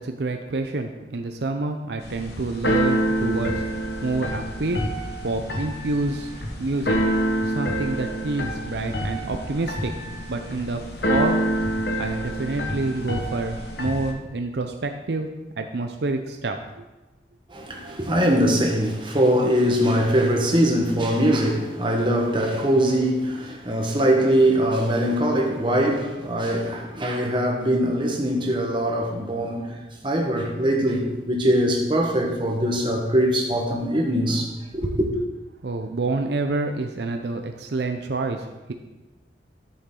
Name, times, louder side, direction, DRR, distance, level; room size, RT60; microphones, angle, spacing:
voice 1, 0.0-3.6 4.0-4.8 5.2-6.3 6.6-7.0 7.4-9.9 10.3-10.8 11.1-11.4 12.0-15.3 15.6-16.8 35.6-38.7, right 3 dB, 70° right, 0.6 m, -27 dB
Keyboard (musical), 2.0-14.1, equal, 70° left, 1.3 m, -27 dB
voice 2, 17.5-29.8 30.0-35.1, equal, 25° right, 1.4 m, -22 dB
12.0 x 7.0 x 3.8 m
head